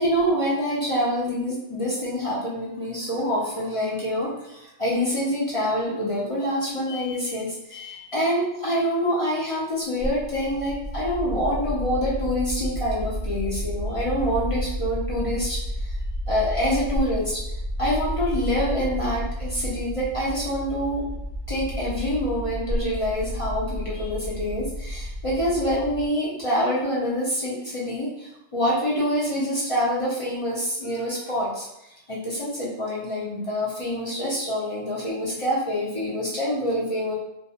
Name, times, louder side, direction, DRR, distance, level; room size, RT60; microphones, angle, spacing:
voice 1, 0.0-16.0 16.3-17.4 17.8-21.0 21.5-37.1, equal, 45° left, -7 dB, 0.4 m, -26 dB
sound 1, 10.0-26.1, equal, 40° right, 0.7 m, -31 dB
2.3 x 2.3 x 2.8 m, 0.85 s
omnidirectional pair, 1.3 m